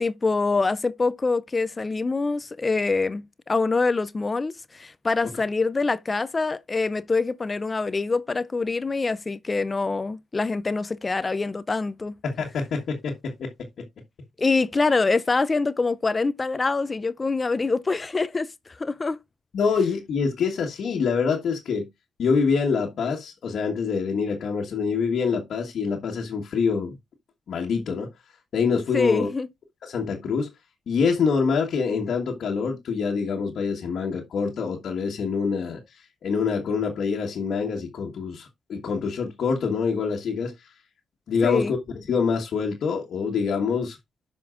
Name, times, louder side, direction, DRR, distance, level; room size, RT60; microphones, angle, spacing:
voice 1, 0.0-12.1 14.4-18.5 18.8-19.2 28.9-29.5 41.4-41.7, left 3 dB, 30° left, 0.5 m, -25 dB
voice 2, 12.2-13.7 19.5-21.9 22.2-26.9 27.5-28.1 28.5-29.3 29.8-30.5 30.9-40.5 41.3-44.0, left 5 dB, 70° left, 1.4 m, -25 dB
12.5 x 5.2 x 2.5 m
supercardioid pair, 65°, 0 cm